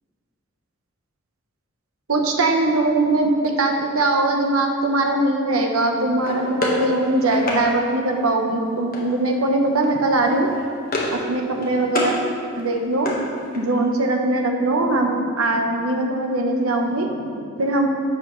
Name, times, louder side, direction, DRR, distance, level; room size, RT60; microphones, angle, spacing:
voice 1, 2.1-10.5 11.1-12.2 12.6-13.1 13.5-17.9, right 2 dB, 80° right, 3 dB, 1.0 m, -21 dB
sound 1, 6.2-7.6 8.9-9.3 9.6-9.9 10.2-11.3 11.5-12.2 12.5-13.8, left 1 dB, 45° left, 1.5 m, -28 dB
11.0 x 7.5 x 3.2 m, 2.3 s
head